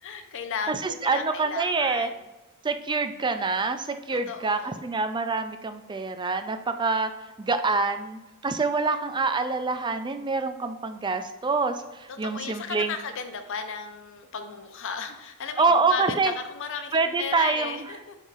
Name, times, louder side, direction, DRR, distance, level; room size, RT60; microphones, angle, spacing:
voice 1, 0.0-2.2 4.3-4.8 12.1-18.2, left 6 dB, 60° left, 7 dB, 0.7 m, -35 dB
voice 2, 0.7-2.1 2.6-7.1 7.4-12.9 15.6-16.3 16.9-17.9, right 4 dB, 20° right, 8 dB, 0.4 m, -26 dB
7.0 x 5.5 x 2.5 m, 1.0 s
head